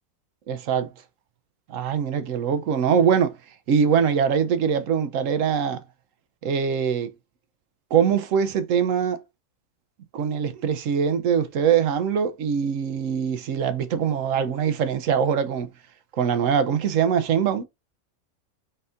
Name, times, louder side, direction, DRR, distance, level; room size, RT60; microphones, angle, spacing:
voice 1, 0.5-0.9 1.7-3.3 3.7-5.8 6.4-7.1 7.9-9.2 10.1-15.7 16.2-17.6, right 7 dB, 65° right, 0.9 m, -22 dB
4.2 x 3.9 x 2.5 m
omnidirectional pair, 1.6 m